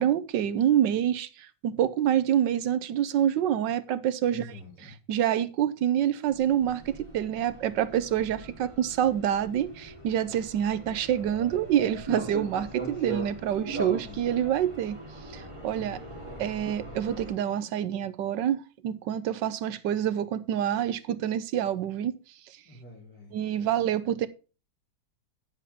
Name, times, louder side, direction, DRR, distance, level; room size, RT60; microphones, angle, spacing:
voice 1, 0.0-4.5 5.1-15.0 15.3-16.0 16.4-22.1 23.3-24.3, right 10 dB, 80° right, 1.4 m, -27 dB
voice 2, 4.3-4.9 8.2-8.4 14.0-14.3 15.8-16.6 22.7-23.9, left 1 dB, 55° left, 5.1 m, -48 dB
sound 1, 6.3-17.3, right 2 dB, 15° right, 3.1 m, -40 dB
10.0 x 7.4 x 3.4 m
omnidirectional pair, 1.9 m